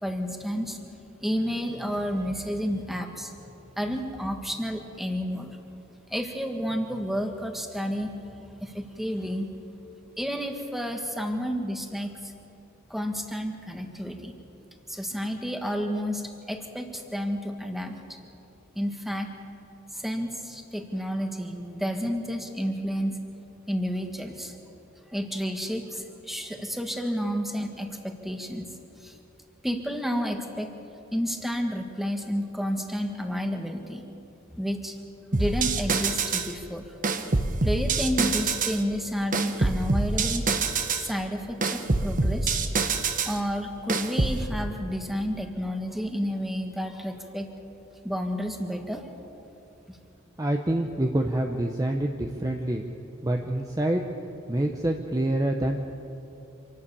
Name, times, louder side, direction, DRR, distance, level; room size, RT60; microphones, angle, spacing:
voice 1, 0.0-0.9 1.2-3.4 3.8-5.6 6.1-8.1 8.6-9.5 10.2-12.3 12.9-14.4 14.9-16.2 16.5-18.0 18.7-19.3 19.9-23.2 23.7-24.5 25.1-28.7 29.0-29.1 29.6-30.7 31.1-34.0 34.5-35.0 35.3-36.9 37.6-40.5 40.9-42.6 43.2-47.5 48.0-49.1, equal, ahead, 4 dB, 1.6 m, -30 dB
sound 1, 35.3-36.5 37.0-38.8 39.3-41.1 41.6-43.4 43.9-44.4, right 3 dB, 40° right, 1.1 m, -25 dB
voice 2, 50.4-52.8 53.2-54.0 54.5-55.8, right 1 dB, 15° right, 3 dB, 0.8 m, -26 dB
26.0 x 12.5 x 8.6 m, 2.8 s
head